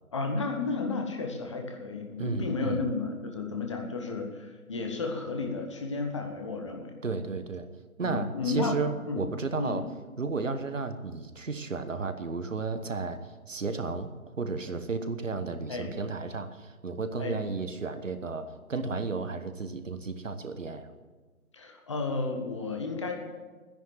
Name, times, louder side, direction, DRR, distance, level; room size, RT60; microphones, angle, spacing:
voice 1, 0.1-6.9 8.0-8.8 9.1-9.2 9.6-9.8 15.7-15.9 17.2-17.4 21.5-23.1, left 3 dB, 20° left, 3 dB, 1.2 m, -32 dB
voice 2, 2.2-2.8 7.0-7.7 8.0-9.8 10.2-13.2 13.5-14.1 14.4-20.9, right 4 dB, 60° right, 10 dB, 1.3 m, -33 dB
12.5 x 10.5 x 7.8 m, 1.3 s
figure-of-eight pair, 150°, 43 cm